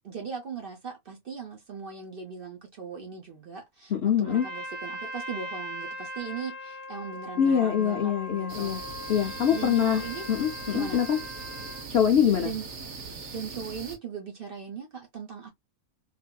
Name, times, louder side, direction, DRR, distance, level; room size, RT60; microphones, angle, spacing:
voice 1, 0.0-3.9 4.2-8.7 9.5-10.3 10.7-11.0 12.4-12.7 13.3-15.5, right 6 dB, 50° right, 0.7 m, -38 dB
voice 2, 3.9-4.5 7.4-8.8 9.1-11.2 11.9-12.5, left 8 dB, 65° left, 0.6 m, -24 dB
Trumpet, 4.2-11.9, left 1 dB, 15° right, 1.2 m, -40 dB
sound 1, 8.5-14.0, right 4 dB, 70° right, 1.1 m, -40 dB
3.3 x 2.4 x 2.2 m
omnidirectional pair, 1.5 m